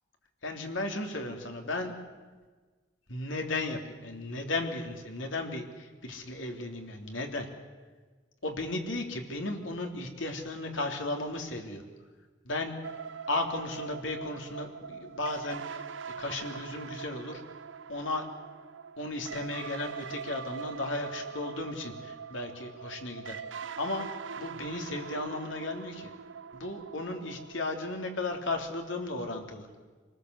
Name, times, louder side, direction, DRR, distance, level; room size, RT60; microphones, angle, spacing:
voice 1, 0.4-1.9 3.1-7.5 8.4-11.8 12.4-12.7 13.3-15.8 16.2-17.4 17.9-18.3 19.0-24.1 24.4-26.1 26.5-29.7, left 2 dB, 80° left, 3 dB, 3.2 m, -35 dB
sound 1, 12.8-28.4, right 6 dB, 80° right, 0.6 m, -43 dB
26.5 x 19.5 x 8.1 m, 1.4 s
head